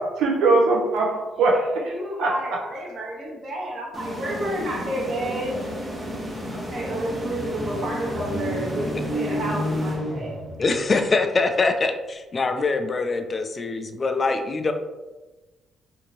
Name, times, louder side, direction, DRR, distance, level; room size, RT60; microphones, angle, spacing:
voice 1, 0.0-1.9 2.2-2.4, right 3 dB, 90° right, -2 dB, 0.7 m, -21 dB
voice 2, 1.3-5.6 6.5-10.4, right 1 dB, 45° right, -3 dB, 1.0 m, -31 dB
sound 1, 3.9-10.6, equal, 20° right, 0.6 m, -34 dB
sound 2, 6.0-11.0, equal, 5° left, 0.9 m, -31 dB
voice 3, 10.6-14.7, left 3 dB, 35° left, 6 dB, 0.3 m, -23 dB
2.6 x 2.6 x 3.0 m, 1.2 s
cardioid pair, 90°, 0 cm